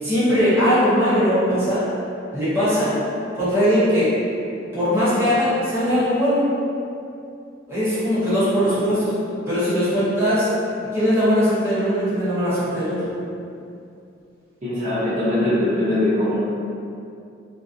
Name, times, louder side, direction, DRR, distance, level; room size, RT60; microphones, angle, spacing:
voice 1, 0.0-1.8 2.3-2.9 3.3-4.1 4.7-6.4 7.7-9.1 9.5-10.5 10.9-13.1, equal, 10° right, -13 dB, 0.8 m, -20 dB
voice 2, 14.6-16.4, left 1 dB, 40° right, -13 dB, 0.6 m, -22 dB
2.6 x 2.0 x 2.4 m, 2.5 s
head